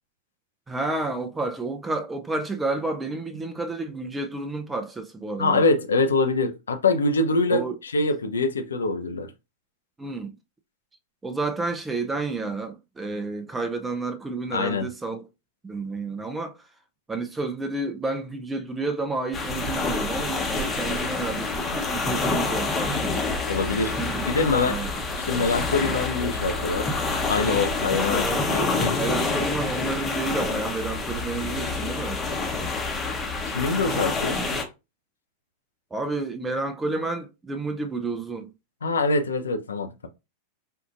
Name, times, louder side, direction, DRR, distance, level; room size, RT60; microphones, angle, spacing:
voice 1, 0.7-5.7 7.5-7.8 10.0-10.3 11.2-15.2 15.6-16.6 17.1-23.2 23.9-24.2 24.7-25.0 28.1-32.2 35.9-38.5, right 3 dB, 10° right, 0.5 m, -30 dB
voice 2, 5.4-9.3 14.5-14.9 23.5-23.9 24.3-24.8 25.3-26.9 27.3-29.3 33.5-34.4 38.8-40.1, left 3 dB, 70° left, 0.5 m, -24 dB
sound 1, 19.3-34.6, left 3 dB, 15° left, 0.9 m, -27 dB
4.5 x 2.5 x 2.4 m
figure-of-eight pair, 90°, 0 cm